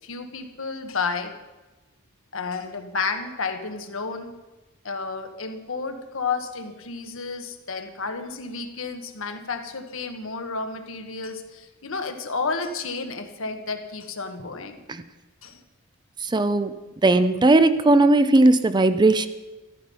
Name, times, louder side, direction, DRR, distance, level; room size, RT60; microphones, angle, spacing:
voice 1, 0.0-1.3 2.3-4.3 4.8-14.8 15.4-15.6, left 4 dB, 65° left, 6 dB, 1.3 m, -31 dB
voice 2, 16.2-16.7 17.0-19.3, right 2 dB, 20° right, 12 dB, 0.5 m, -17 dB
13.5 x 12.5 x 5.4 m, 1.1 s
head